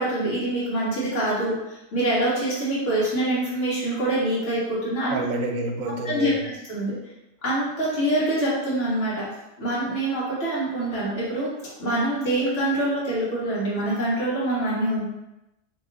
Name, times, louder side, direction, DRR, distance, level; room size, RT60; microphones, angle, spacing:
voice 1, 0.0-5.2 6.0-7.0 7.4-9.2 9.6-11.5 11.8-15.0, right 1 dB, 60° left, -8 dB, 1.7 m, -25 dB
voice 2, 5.1-6.4, right 2 dB, 85° right, 2 dB, 1.1 m, -28 dB
3.0 x 2.9 x 3.8 m, 0.93 s
omnidirectional pair, 1.4 m